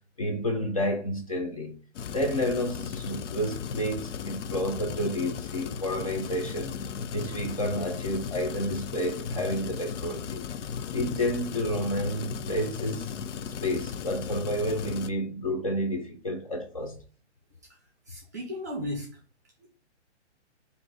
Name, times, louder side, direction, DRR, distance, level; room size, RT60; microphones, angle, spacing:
voice 1, 0.2-1.7 2.1-6.7 7.1-10.5 10.9-13.2 13.6-17.0, equal, 30° left, 0.6 m, -30 dB
sound 1, 1.9-15.1, left 7 dB, 80° left, 0.5 m, -36 dB
voice 2, 17.7-19.2 19.6-19.7, left 1 dB, 15° right, 0.6 m, -36 dB
3.7 x 2.7 x 4.5 m
hypercardioid pair, 165°, 36 cm